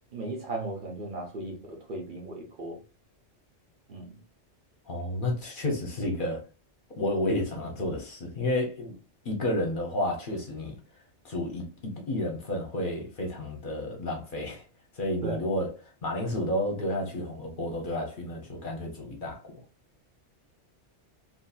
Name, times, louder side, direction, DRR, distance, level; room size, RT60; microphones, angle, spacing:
voice 1, 0.1-2.8 3.9-4.1 15.2-15.5, right 2 dB, 50° right, 0.8 m, -36 dB
voice 2, 4.9-6.4 7.0-9.0 9.2-10.8 11.2-11.6 12.1-14.6 14.9-19.6, left 1 dB, 50° left, 0.8 m, -31 dB
2.7 x 2.7 x 2.3 m
omnidirectional pair, 1.2 m